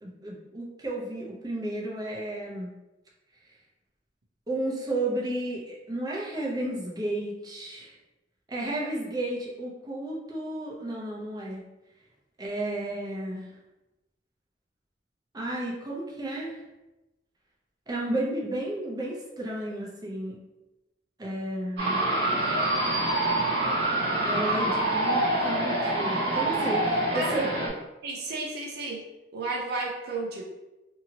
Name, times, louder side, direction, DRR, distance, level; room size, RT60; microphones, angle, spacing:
voice 1, 0.0-2.7 4.5-7.9 8.5-11.7 12.4-13.5 15.3-16.6 17.9-20.4 21.2-22.1 22.4-22.5 24.2-27.5, right 1 dB, 20° right, -3 dB, 0.6 m, -33 dB
sound 1, 21.8-27.7, right 1 dB, 85° right, 1.1 m, -26 dB
voice 2, 28.0-29.0 29.3-30.4, right 3 dB, 60° right, -3 dB, 0.6 m, -32 dB
2.8 x 2.7 x 2.8 m, 1.0 s
head